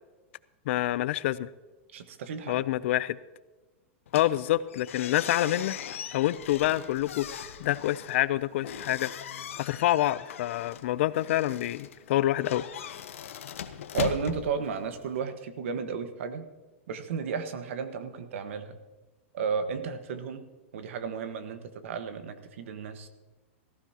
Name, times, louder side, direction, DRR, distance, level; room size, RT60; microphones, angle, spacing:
voice 1, 0.7-1.5 2.5-3.2 4.1-5.8 6.1-9.1 9.6-12.6, left 14 dB, 65° left, 17 dB, 0.5 m, -27 dB
voice 2, 1.9-2.6 13.9-16.4 16.9-18.8 19.3-20.4 20.7-23.1, right 6 dB, 70° right, 9 dB, 1.4 m, -33 dB
sound 1, 4.1-15.2, left 9 dB, 85° left, 0.9 m, -40 dB
18.0 x 15.0 x 2.9 m, 1.2 s
hypercardioid pair, 125°, 7 cm